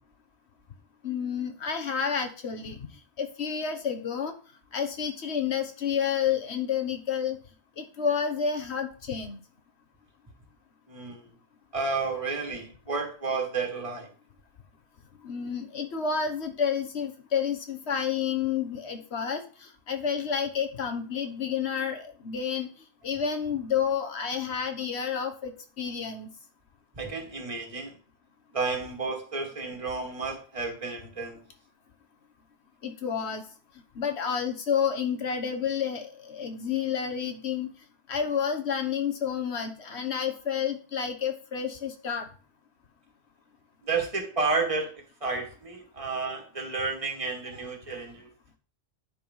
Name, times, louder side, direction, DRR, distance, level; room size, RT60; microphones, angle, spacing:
voice 1, 1.0-2.8 3.2-4.3 4.7-7.4 7.8-9.4 15.2-22.7 23.0-25.5 25.8-26.3 32.8-33.4 33.9-37.7 38.1-42.3, left 7 dB, 80° left, 6 dB, 1.4 m, -30 dB
voice 2, 10.9-11.3 11.7-14.1 27.0-27.9 28.5-31.4 43.9-44.9 45.2-48.3, right 4 dB, 30° right, 2 dB, 1.9 m, -31 dB
9.8 x 5.4 x 5.5 m, 0.39 s
omnidirectional pair, 1.1 m